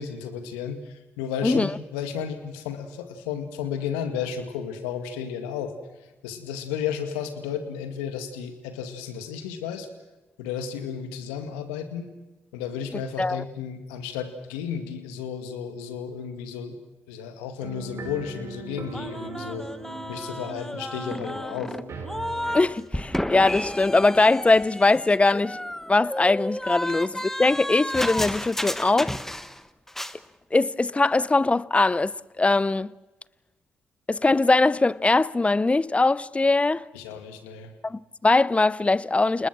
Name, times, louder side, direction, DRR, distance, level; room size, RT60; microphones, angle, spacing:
voice 1, 0.0-5.7 6.2-9.9 10.4-12.1 12.5-16.8 17.1-19.7 20.1-21.7 36.9-37.7, left 7 dB, 85° left, 2.1 m, -33 dB
voice 2, 1.4-1.8 13.2-13.4 22.5-25.6 25.9-29.1 30.5-32.9 34.1-36.8 37.8-39.5, left 3 dB, 25° left, 0.7 m, -21 dB
sound 1, 17.6-22.7, right 4 dB, 60° right, 5.1 m, -39 dB
sound 2, 18.9-22.7 22.9-29.6 29.9-30.2, left 1 dB, 5° left, 1.3 m, -32 dB
29.5 x 19.5 x 6.2 m
hypercardioid pair, 45°, 5 cm